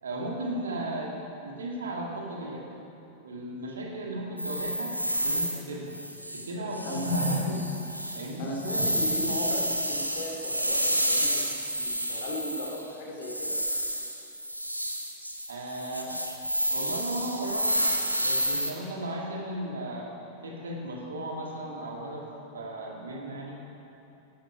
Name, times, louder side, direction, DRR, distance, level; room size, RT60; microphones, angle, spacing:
voice 1, 0.0-1.1 1.4-2.6 3.2-4.9 5.2-6.0 6.3-7.7 8.1-8.9 15.5-16.2 16.7-18.0 18.2-20.1 20.4-22.3 22.5-23.6, right 1 dB, 70° right, -1 dB, 2.0 m, -34 dB
sound 1, 4.4-5.6 5.9-6.5 6.7-12.9 13.2-18.7, equal, 90° right, 0.8 m, -30 dB
voice 2, 8.4-13.6, left 1 dB, 50° left, 0 dB, 2.4 m, -37 dB
11.5 x 11.0 x 5.0 m, 2.9 s
figure-of-eight pair, 90°, 0 cm